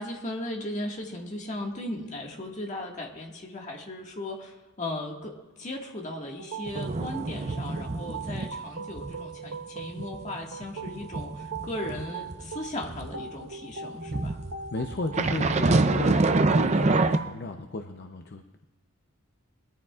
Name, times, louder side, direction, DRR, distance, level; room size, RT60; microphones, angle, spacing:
voice 1, 0.0-14.4, left 1 dB, 35° left, 0 dB, 1.8 m, -37 dB
sound 1, 6.3-17.4, right 6 dB, 80° right, 1.0 m, -40 dB
sound 2, 6.7-8.6 8.9-9.2 9.5-13.1 14.1-17.2, right 3 dB, 30° right, 0.5 m, -26 dB
voice 2, 14.7-18.7, left 2 dB, 50° left, 5 dB, 0.7 m, -34 dB
21.5 x 13.5 x 2.4 m, 1.2 s
head